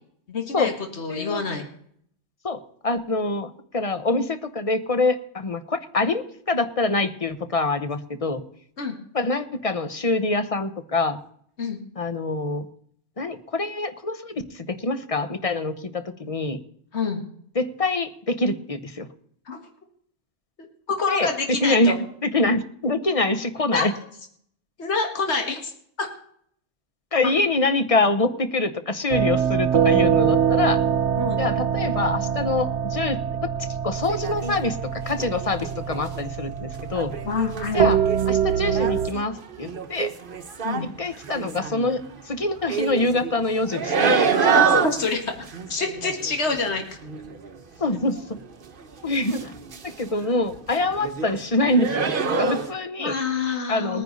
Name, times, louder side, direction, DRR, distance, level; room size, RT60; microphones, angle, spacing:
voice 1, 0.3-1.6 8.8-9.0 11.6-11.8 16.9-17.2 19.5-19.6 20.9-22.0 23.7-24.0 24.8-25.7 26.0-26.1 28.0-28.1 31.2-31.4 37.2-37.8 40.6-40.9 44.5-45.2 45.7-46.8 53.0-54.0, left 4 dB, 70° left, 4 dB, 2.1 m, -26 dB
voice 2, 1.1-1.4 2.4-8.4 9.1-11.2 12.0-12.6 13.2-16.6 17.6-19.1 21.1-21.3 21.6-22.0 22.2-23.9 27.1-30.8 31.4-33.2 33.8-37.2 37.7-38.0 38.3-40.2 41.0-44.2 47.8-48.4 49.0-49.6 49.8-52.1 52.4-53.2 53.7-54.0, left 2 dB, 30° left, 10 dB, 1.0 m, -25 dB
sound 1, 29.1-39.1, right 8 dB, 80° right, 1.0 m, -24 dB
sound 2, 34.0-34.8 35.2-36.2 36.8-40.9 41.1-42.2 42.6-48.4 48.7-50.3 50.5-51.4 51.7-52.7, right 5 dB, 50° right, 1.2 m, -27 dB
20.5 x 9.8 x 4.0 m, 0.65 s
omnidirectional pair, 1.2 m